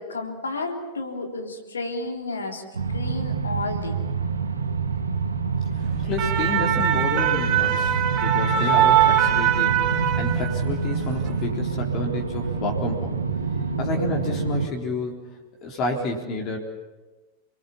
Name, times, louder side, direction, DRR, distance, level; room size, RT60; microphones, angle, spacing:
voice 1, 0.0-2.6 2.9-3.9, left 2 dB, 75° left, 3 dB, 3.6 m, -31 dB
sound 1, 2.7-14.7, right 5 dB, 75° right, 2.0 m, -27 dB
sound 2, 5.9-10.7 11.0-11.3, right 10 dB, 40° right, 3.4 m, -22 dB
voice 2, 6.0-9.8 10.2-13.2 13.8-15.3 15.6-16.6, left 2 dB, 35° left, 0 dB, 3.8 m, -30 dB
29.5 x 21.0 x 7.2 m, 1.3 s
figure-of-eight pair, 90°, 0 cm